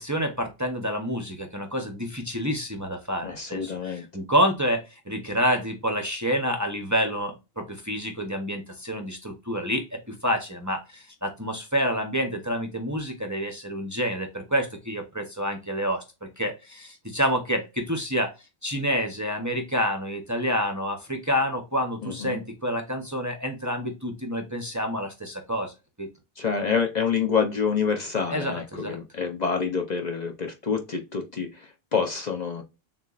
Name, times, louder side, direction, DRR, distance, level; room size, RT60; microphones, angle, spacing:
voice 1, 0.0-18.3 18.6-25.7 26.0-26.1 28.3-29.0, equal, 20° right, 0.7 m, -28 dB
voice 2, 3.2-4.1 22.0-22.4 26.4-32.6, left 6 dB, 50° left, 0.7 m, -27 dB
6.8 x 2.4 x 2.4 m
omnidirectional pair, 1.0 m